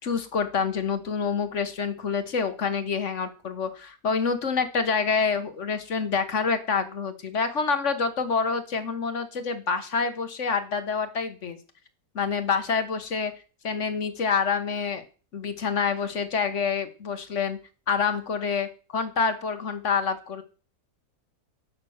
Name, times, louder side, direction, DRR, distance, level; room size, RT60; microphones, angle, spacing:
voice 1, 0.0-11.6 12.1-13.3 13.6-15.0 15.3-17.6 17.9-20.4, left 5 dB, 50° left, 10 dB, 1.4 m, -27 dB
8.9 x 7.7 x 6.4 m, 0.37 s
omnidirectional pair, 1.8 m